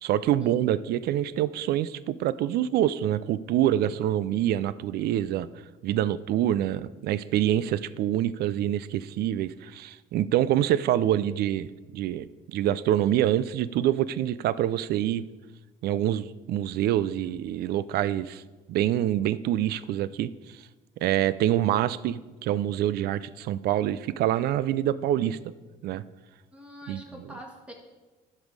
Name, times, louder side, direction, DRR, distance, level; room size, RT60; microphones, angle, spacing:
voice 1, 0.0-5.5 5.8-15.2 15.8-18.4 18.7-20.3 21.0-25.4 25.8-26.0 26.9-27.0, right 12 dB, 70° right, 17 dB, 0.4 m, -26 dB
voice 2, 26.5-27.7, equal, 5° right, 1 dB, 1.8 m, -44 dB
11.0 x 5.5 x 4.7 m, 1.2 s
cardioid pair, 110°, 17 cm